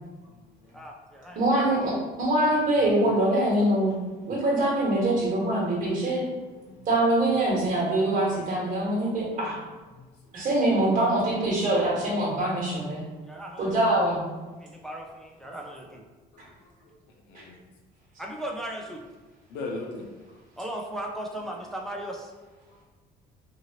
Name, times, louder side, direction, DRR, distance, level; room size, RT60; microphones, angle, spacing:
voice 1, 0.7-1.5 13.3-13.7 14.6-16.0 18.2-19.0 20.6-22.3, right 1 dB, 5° left, 0 dB, 0.3 m, -37 dB
voice 2, 1.3-3.9 4.3-6.2 6.8-9.6 10.3-13.0 13.6-14.2, right 1 dB, 50° right, -6 dB, 1.5 m, -24 dB
voice 3, 16.4-16.9 17.3-17.6 19.5-20.1 22.7-22.8, left 3 dB, 90° left, 1 dB, 0.6 m, -39 dB
2.7 x 2.7 x 2.9 m, 1.3 s
cardioid pair, 110°, 17 cm